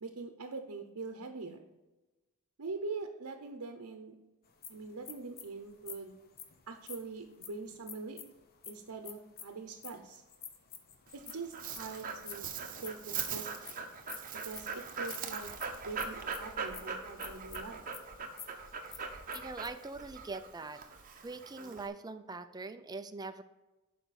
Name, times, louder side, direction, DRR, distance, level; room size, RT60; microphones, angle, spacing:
voice 1, 0.0-1.7 2.6-4.2 4.7-6.1 6.7-8.2 8.7-10.2 11.1-12.5 12.8-13.7 14.4-15.5 15.8-17.8, right 4 dB, 75° right, 5 dB, 0.8 m, -43 dB
sound 1, 4.5-19.7, left 8 dB, 45° left, 0.8 m, -50 dB
Dog, 11.1-21.9, right 5 dB, 40° right, 0.8 m, -41 dB
voice 2, 19.3-20.8 21.2-23.4, right 3 dB, 20° right, 9 dB, 0.4 m, -42 dB
11.5 x 5.0 x 4.2 m, 1.1 s
head